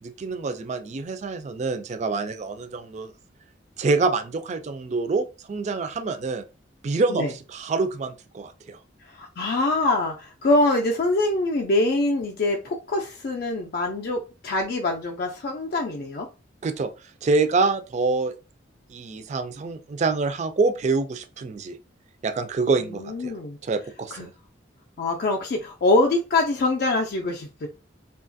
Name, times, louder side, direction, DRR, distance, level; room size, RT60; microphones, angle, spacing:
voice 1, 0.0-3.1 3.8-6.4 6.8-7.2 7.5-8.8 16.6-16.9 17.2-18.3 18.9-21.8 22.2-23.3 23.6-24.3, right 3 dB, 35° right, 0.3 m, -26 dB
voice 2, 9.0-16.3 22.8-23.6 24.1-24.4 25.0-27.7, left 2 dB, 50° left, 0.4 m, -24 dB
2.8 x 2.3 x 2.6 m
head